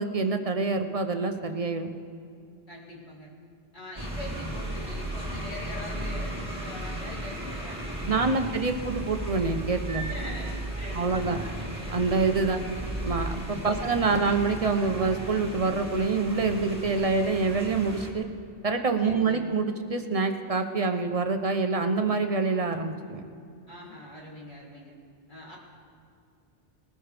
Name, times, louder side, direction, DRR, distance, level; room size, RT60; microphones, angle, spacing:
voice 1, 0.0-1.9 8.1-10.1 10.9-11.4 11.9-12.6 13.0-18.3 18.6-23.2, right 4 dB, 35° right, 6 dB, 0.9 m, -26 dB
voice 2, 2.7-3.3 3.7-9.1 10.0-11.7 12.4-12.9 13.5-14.0 19.0-19.4 23.7-24.9 25.3-25.6, left 1 dB, 50° left, -5 dB, 3.4 m, -43 dB
sound 1, 4.0-18.1, right 1 dB, 5° right, 2.2 m, -35 dB
20.5 x 13.5 x 3.4 m, 2.4 s
omnidirectional pair, 1.1 m